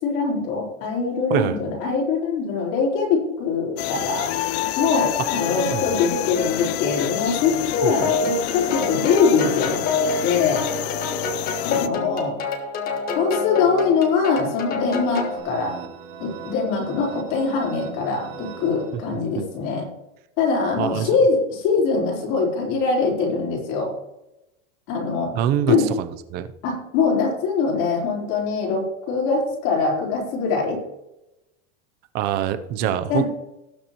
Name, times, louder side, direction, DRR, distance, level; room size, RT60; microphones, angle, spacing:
voice 1, 0.0-4.3 4.8-9.8 10.2-10.6 11.6-12.3 13.1-15.7 16.2-19.9 20.4-23.9 24.9-25.3 25.7-25.9 26.6-30.8 33.1-33.2, left 4 dB, 50° left, -2 dB, 4.2 m, -22 dB
sound 1, 3.8-11.9, left 14 dB, 70° left, 0.6 m, -28 dB
sound 2, 8.0-15.4, left 4 dB, 25° left, 1.4 m, -27 dB
sound 3, 14.7-19.5, right 6 dB, 55° right, 3.8 m, -40 dB
voice 2, 20.8-21.1 25.3-26.5 32.1-33.2, right 10 dB, 30° right, 11 dB, 0.6 m, -24 dB
18.5 x 7.1 x 3.0 m, 0.91 s
supercardioid pair, 170°, 33 cm